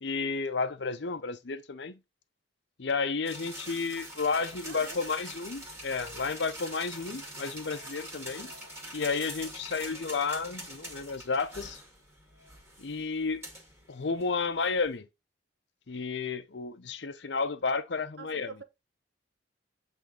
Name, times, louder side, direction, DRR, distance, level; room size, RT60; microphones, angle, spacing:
voice 1, 0.0-2.0 2.8-8.5 8.9-11.8 12.8-13.4 13.9-15.1 15.9-18.5, left 4 dB, 70° left, 0.7 m, -32 dB
sound 1, 3.2-15.0, right 1 dB, 15° right, 1.9 m, -44 dB
voice 2, 4.6-5.0 18.2-18.6, right 4 dB, 75° right, 1.0 m, -45 dB
8.2 x 3.4 x 3.8 m
head